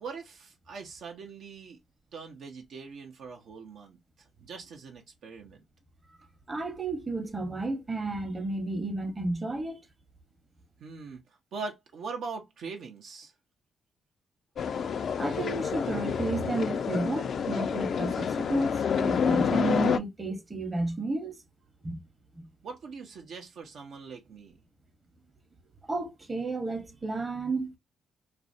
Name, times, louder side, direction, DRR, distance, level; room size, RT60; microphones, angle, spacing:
voice 1, 0.0-1.8 2.1-4.0 4.4-5.6 10.8-11.2 11.5-13.3 22.6-24.6, right 4 dB, 75° right, 0.5 m, -41 dB
voice 2, 6.5-9.8 15.2-21.4 21.8-22.0 22.3-22.4 25.9-27.8, right 2 dB, 30° right, 0.8 m, -32 dB
sound 1, 14.6-20.0, left 6 dB, 65° left, 0.3 m, -28 dB
2.5 x 2.1 x 2.5 m
supercardioid pair, 60°, 0 cm